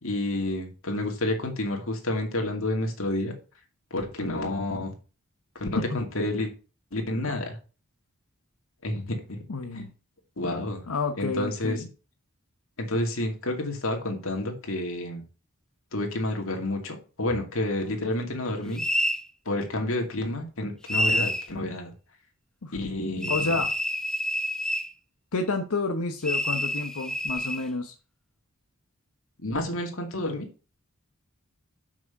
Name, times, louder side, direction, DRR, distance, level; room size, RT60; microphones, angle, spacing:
voice 1, 0.0-3.3 3.9-4.9 5.5-5.7 5.9-6.5 6.9-7.6 8.8-9.4 9.7-9.9 10.4-10.8 11.2-11.8 12.8-15.2 15.9-18.8 19.5-21.9 22.7-23.6 29.4-30.5, left 1 dB, 65° left, 2 dB, 2.5 m, -29 dB
voice 2, 9.5-9.9 10.9-11.9 22.6-22.7 23.3-23.7 25.3-27.9, left 3 dB, 85° left, 5 dB, 0.9 m, -29 dB
sound 1, 18.8-19.2 20.9-21.5 23.2-24.9 26.2-27.6, equal, 5° left, 0.6 m, -27 dB
7.1 x 6.3 x 5.8 m, 0.35 s
head